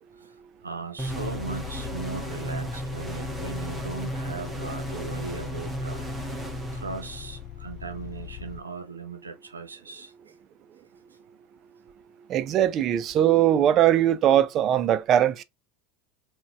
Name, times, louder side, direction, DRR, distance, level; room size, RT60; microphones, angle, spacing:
voice 1, 0.6-6.1 6.7-10.1, right 5 dB, 90° right, 0.6 m, -38 dB
sound 1, 1.0-7.5, right 1 dB, 10° right, 0.9 m, -35 dB
sound 2, 1.1-8.6, left 13 dB, 50° left, 0.3 m, -39 dB
voice 2, 12.3-15.4, right 11 dB, 40° right, 0.4 m, -21 dB
3.8 x 2.2 x 2.3 m
hypercardioid pair, 85°, 0 cm